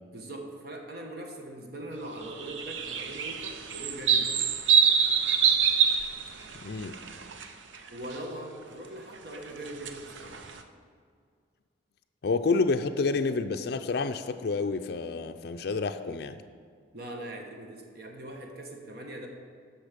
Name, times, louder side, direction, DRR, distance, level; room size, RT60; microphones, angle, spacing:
voice 1, 0.1-4.4 7.9-10.4 16.9-19.3, right 1 dB, 55° right, 2 dB, 1.2 m, -41 dB
sound 1, 2.3-7.5 7.7-8.1 9.3-10.6, right 7 dB, 75° right, 0.7 m, -25 dB
voice 2, 6.6-7.0 12.2-16.4, left 4 dB, 55° left, 7 dB, 0.4 m, -29 dB
12.5 x 6.0 x 5.1 m, 2.1 s
head